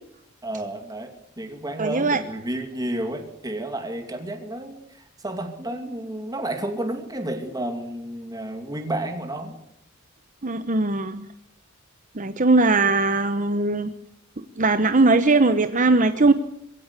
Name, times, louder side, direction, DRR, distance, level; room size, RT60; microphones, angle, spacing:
voice 1, 0.4-9.6 12.8-12.9, right 1 dB, 15° right, 6 dB, 2.5 m, -31 dB
voice 2, 1.8-2.2 10.4-11.3 12.2-13.9 14.4-16.3, right 3 dB, 35° right, 9 dB, 1.0 m, -20 dB
22.5 x 16.5 x 8.2 m, 0.74 s
head